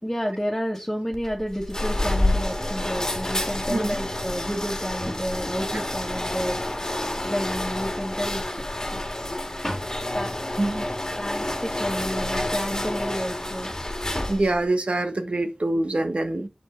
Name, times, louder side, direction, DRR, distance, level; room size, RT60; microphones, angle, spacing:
voice 1, 0.0-6.6 7.2-8.4 8.9-9.0 9.6-9.9 10.1-10.3 11.2-13.7, equal, 5° left, 2.1 m, -30 dB
sound 1, 1.1-14.6, left 1 dB, 30° left, 1.7 m, -29 dB
voice 2, 14.3-16.5, right 2 dB, 75° right, 1.5 m, -25 dB
8.2 x 5.3 x 4.5 m
wide cardioid pair, 45°, 2 cm